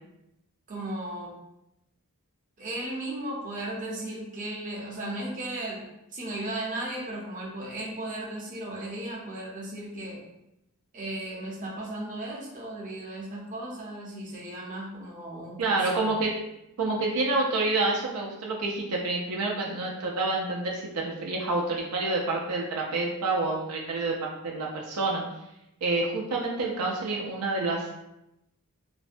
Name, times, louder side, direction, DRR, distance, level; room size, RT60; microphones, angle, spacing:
voice 1, 0.7-1.3 2.6-10.2 10.9-16.1, right 1 dB, 35° right, -4 dB, 0.7 m, -36 dB
voice 2, 15.6-16.3 16.8-24.2 24.4-25.2 25.8-28.0, right 3 dB, 80° right, -2 dB, 0.4 m, -28 dB
2.5 x 2.1 x 2.5 m, 0.87 s
head